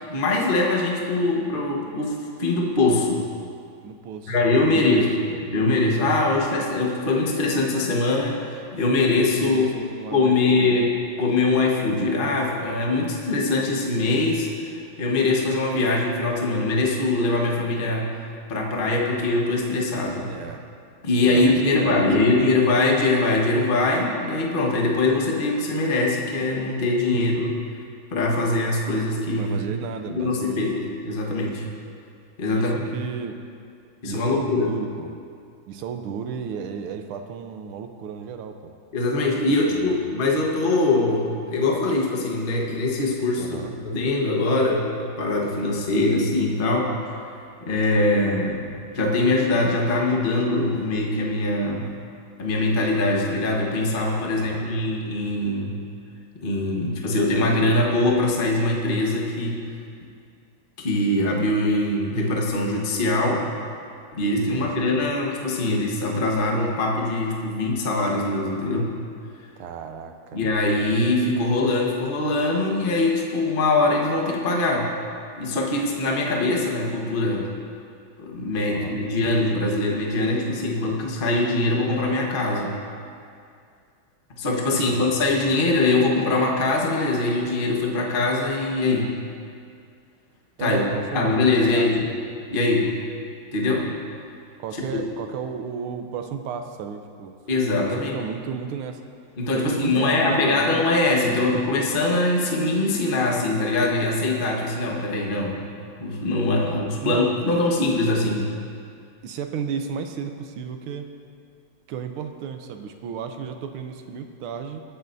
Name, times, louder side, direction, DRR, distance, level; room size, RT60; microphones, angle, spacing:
voice 1, 0.1-2.1 2.4-3.3 4.3-5.1 5.5-9.7 10.1-10.9 11.2-18.1 18.5-20.3 21.0-27.5 28.1-29.6 30.2-31.6 32.4-32.8 34.0-34.7 38.9-46.9 47.6-48.6 48.9-51.9 52.4-55.8 56.4-59.6 60.8-63.4 64.1-68.9 70.3-74.9 75.4-77.5 78.2-82.8 84.4-89.1 90.6-90.8 91.1-92.0 92.5-92.9 93.5-93.9 94.9-95.0 97.5-98.2 99.4-105.6 106.0-108.5, left 2 dB, 30° left, -1 dB, 1.1 m, -22 dB
voice 2, 3.8-4.3 4.6-5.4 9.3-10.9 20.3-20.7 21.2-22.4 27.1-27.2 29.4-30.7 32.5-33.4 34.0-35.1 35.7-38.6 39.7-40.0 43.4-43.7 54.4-54.7 64.5-64.7 64.9-65.1 69.6-70.4 78.7-79.0 84.7-85.1 85.4-85.6 90.6-92.1 94.6-97.4 98.0-99.0 99.5-100.9 101.2-101.5 107.0-107.6 109.2-111.1 111.9-114.8, right 6 dB, 85° right, 6 dB, 1.6 m, -33 dB
22.0 x 8.9 x 2.7 m, 2.3 s
omnidirectional pair, 2.3 m